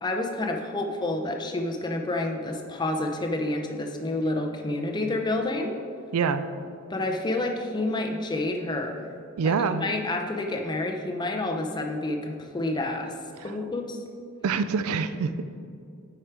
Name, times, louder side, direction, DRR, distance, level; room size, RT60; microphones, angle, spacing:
voice 1, 0.0-5.8 6.9-9.1 9.4-13.1 13.4-14.0, left 2 dB, 20° left, 3 dB, 0.6 m, -29 dB
voice 2, 6.1-6.4 9.4-9.9 13.4-13.5 14.4-15.4, right 5 dB, 75° right, 11 dB, 0.4 m, -25 dB
7.9 x 4.9 x 4.5 m, 2.4 s
head